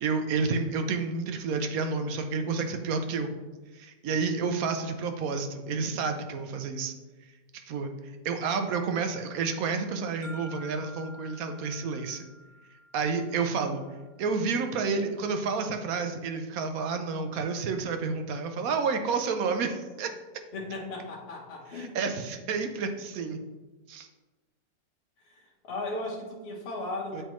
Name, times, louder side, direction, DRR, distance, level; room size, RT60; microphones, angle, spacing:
voice 1, 0.0-3.3 3.7-6.9 7.2-12.3 12.9-13.8 14.2-20.1 21.7-23.4 23.9-24.1 27.1-27.2, right 4 dB, 70° right, 6 dB, 0.9 m, -30 dB
sound 1, 10.2-14.2, equal, 10° right, 1.2 m, -50 dB
voice 2, 20.5-22.0 25.2-27.2, left 2 dB, 45° left, -2 dB, 1.0 m, -36 dB
7.8 x 4.5 x 3.0 m, 1.2 s
omnidirectional pair, 1.9 m